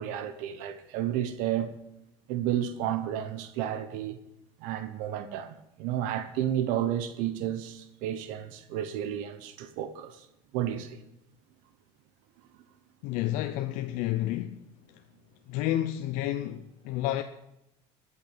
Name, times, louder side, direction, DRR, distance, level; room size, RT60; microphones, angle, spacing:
voice 1, 0.0-1.7 2.3-4.2 4.6-10.3 10.5-11.0, right 11 dB, 80° right, 1.0 m, -32 dB
voice 2, 13.0-14.6 14.9-15.0 15.5-17.2, left 13 dB, 80° left, 0.6 m, -30 dB
14.0 x 5.8 x 8.8 m
supercardioid pair, 105°, 13 cm